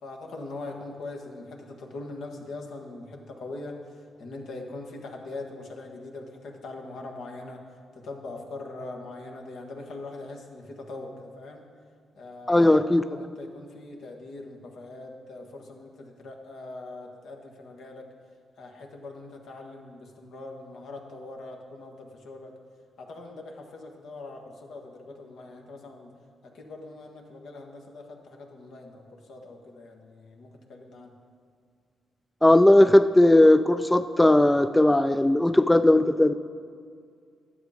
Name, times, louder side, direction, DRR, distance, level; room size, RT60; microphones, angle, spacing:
voice 1, 0.0-7.6 7.9-11.7 12.2-18.1 18.6-22.5 23.0-26.1 26.4-31.1, left 2 dB, 70° left, 2 dB, 1.3 m, -42 dB
voice 2, 12.5-13.2 32.4-36.3, left 1 dB, 10° left, 11 dB, 0.3 m, -18 dB
11.0 x 7.1 x 5.0 m, 2.2 s
supercardioid pair, 50°, 0 cm